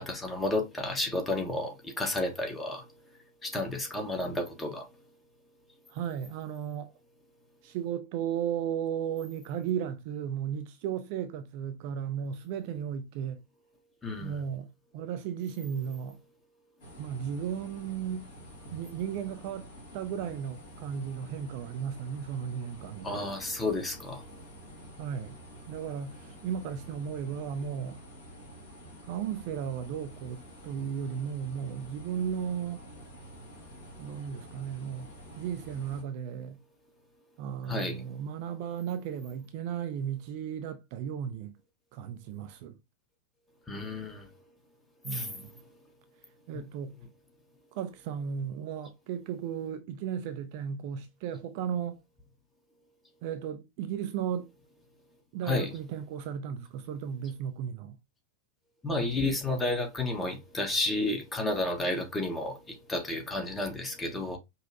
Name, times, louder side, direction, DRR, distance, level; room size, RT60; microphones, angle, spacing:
voice 1, 0.0-2.8 3.4-4.8 14.0-14.4 23.0-24.2 37.7-38.0 43.7-44.2 45.1-45.3 46.5-46.6 55.5-55.7 58.8-64.4, left 2 dB, 15° left, 1.0 m, -31 dB
voice 2, 5.9-6.9 7.6-13.4 14.2-16.2 17.0-18.3 18.7-23.3 25.0-25.4 25.7-28.0 29.0-32.8 34.0-35.1 35.4-36.6 37.4-41.5 41.9-42.8 45.0-45.5 46.5-47.0 47.7-52.0 53.2-54.5 55.3-58.0, right 8 dB, 45° right, 0.4 m, -35 dB
sound 1, 16.8-36.0, equal, 55° left, 1.8 m, -49 dB
5.2 x 2.1 x 2.5 m
figure-of-eight pair, 90°, 0 cm